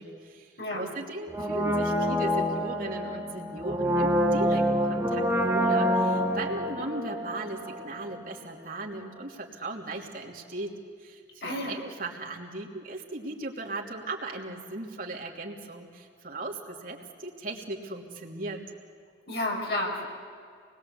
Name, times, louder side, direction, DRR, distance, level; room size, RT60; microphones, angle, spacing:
voice 1, 0.0-10.7 11.0-18.6, right 2 dB, 50° right, 0 dB, 2.9 m, -37 dB
voice 2, 0.6-0.9 11.4-11.8 19.3-20.0, left 1 dB, 60° left, 0 dB, 5.3 m, -31 dB
Brass instrument, 1.3-8.2 8.4-8.5, equal, 10° right, 2.4 m, -27 dB
27.5 x 21.0 x 8.3 m, 2.3 s
head